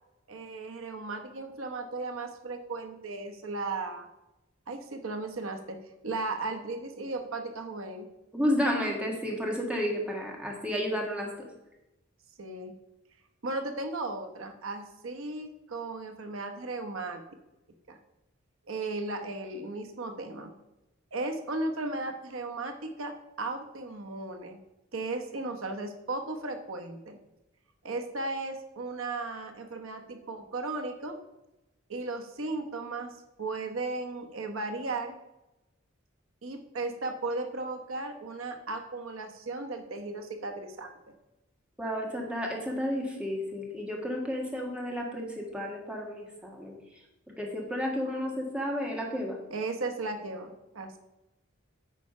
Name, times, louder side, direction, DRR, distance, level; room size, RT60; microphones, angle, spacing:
voice 1, 0.3-4.0 4.7-5.8 6.0-8.1 12.4-12.7 13.4-17.2 17.9-18.0 18.7-20.5 21.1-23.1 23.4-24.6 24.9-27.2 27.8-31.2 31.9-35.1 36.4-40.9 49.5-51.0, right 2 dB, 85° right, 5 dB, 1.0 m, -36 dB
voice 2, 8.3-11.3 41.8-46.7 47.4-49.4, equal, 5° right, -1 dB, 1.6 m, -31 dB
9.0 x 4.9 x 5.4 m, 0.97 s
head